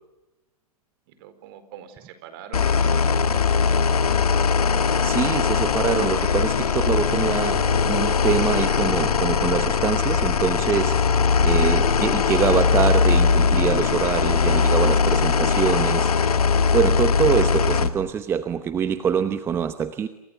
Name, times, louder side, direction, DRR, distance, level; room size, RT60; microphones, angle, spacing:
voice 1, 1.1-4.2 11.7-12.7, right 9 dB, 40° right, 11 dB, 4.6 m, -44 dB
sound 1, 2.5-17.9, left 5 dB, 70° left, 2.4 m, -20 dB
voice 2, 5.0-11.2 11.4-16.1 16.7-20.1, right 7 dB, 10° right, 11 dB, 0.9 m, -24 dB
sound 2, 7.5-13.6, equal, 5° left, 5.9 m, -37 dB
29.5 x 28.5 x 7.0 m, 0.98 s
hypercardioid pair, 135°, 20 cm